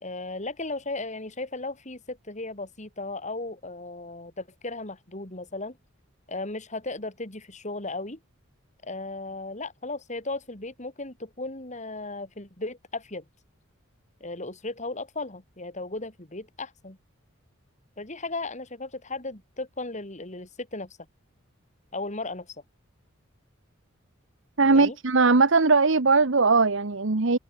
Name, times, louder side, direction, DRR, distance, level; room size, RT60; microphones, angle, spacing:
voice 1, 0.0-5.8 6.3-8.2 8.8-13.3 14.2-17.0 18.0-21.0 21.9-22.6 24.6-25.0, left 2 dB, 35° left, 3.6 m, -36 dB
voice 2, 24.6-27.4, right 4 dB, 65° right, 1.1 m, -20 dB
open air
head